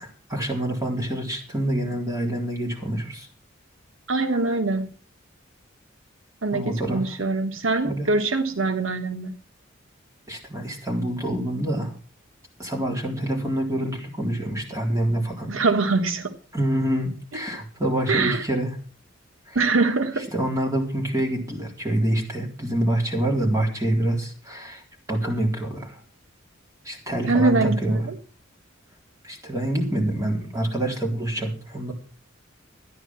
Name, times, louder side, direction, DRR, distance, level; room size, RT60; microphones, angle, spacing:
voice 1, 0.0-3.3 6.5-7.0 7.8-8.1 10.3-11.9 12.6-15.5 16.5-18.7 19.5-19.6 20.3-24.8 25.1-26.0 26.8-28.0 29.2-31.9, right 1 dB, 15° right, -1 dB, 4.0 m, -26 dB
voice 2, 4.1-4.9 6.4-9.3 15.5-16.3 18.1-18.4 19.5-20.3 27.3-28.1, right 3 dB, 85° right, 7 dB, 1.4 m, -23 dB
13.5 x 10.5 x 6.1 m, 0.40 s
head